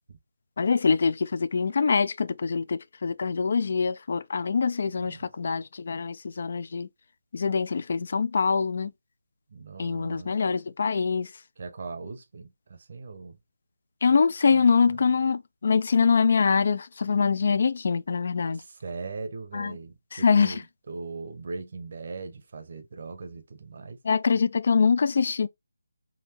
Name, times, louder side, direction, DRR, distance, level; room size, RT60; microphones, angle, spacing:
voice 1, 0.6-6.9 7.3-8.9 9.8-11.3 14.0-18.6 19.5-19.7 20.1-20.5 24.0-25.5, left 5 dB, 50° left, 0.3 m, -24 dB
voice 2, 5.0-5.6 9.5-10.3 11.6-13.4 14.5-15.0 18.5-24.0, right 4 dB, 45° right, 0.8 m, -40 dB
3.9 x 2.6 x 2.9 m
figure-of-eight pair, 165°, 0 cm